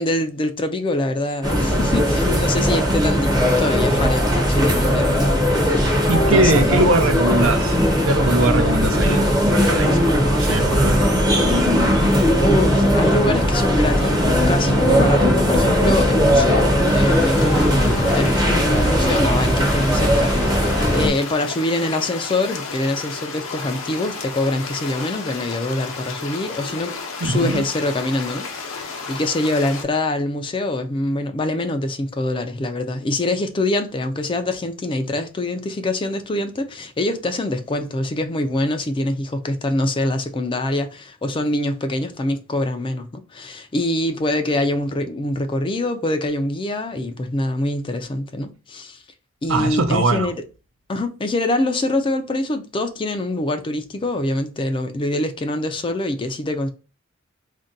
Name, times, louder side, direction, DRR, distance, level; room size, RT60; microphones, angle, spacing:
voice 1, 0.0-6.0 6.3-6.9 12.4-26.9 27.2-49.0 49.4-50.4 50.9-56.7, left 2 dB, 25° left, 0.4 m, -24 dB
sound 1, 1.4-21.1, equal, 20° right, 0.7 m, -18 dB
voice 2, 6.1-7.8 8.1-11.4 27.2-27.6 49.5-50.3, right 2 dB, 75° right, 0.5 m, -21 dB
sound 2, 16.8-29.8, left 4 dB, 75° left, 0.7 m, -32 dB
2.6 x 2.2 x 3.7 m
head